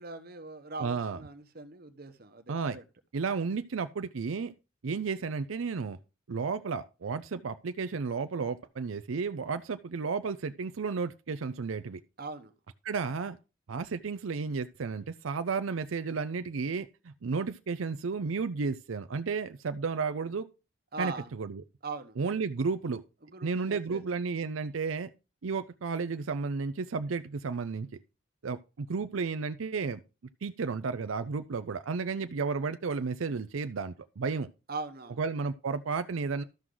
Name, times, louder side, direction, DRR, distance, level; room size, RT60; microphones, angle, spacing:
voice 1, 0.0-2.8 12.2-12.5 20.9-21.3 21.8-22.2 23.2-24.0 34.7-35.2, right 3 dB, 50° right, 1.0 m, -41 dB
voice 2, 0.8-1.2 2.5-2.8 3.1-4.5 4.8-6.0 6.3-12.0 12.8-13.4 13.7-20.5 21.0-21.6 22.2-23.0 23.4-25.1 25.4-27.9 28.4-30.0 30.4-34.5 35.2-36.4, right 5 dB, 80° right, 0.5 m, -33 dB
13.0 x 6.2 x 3.8 m
head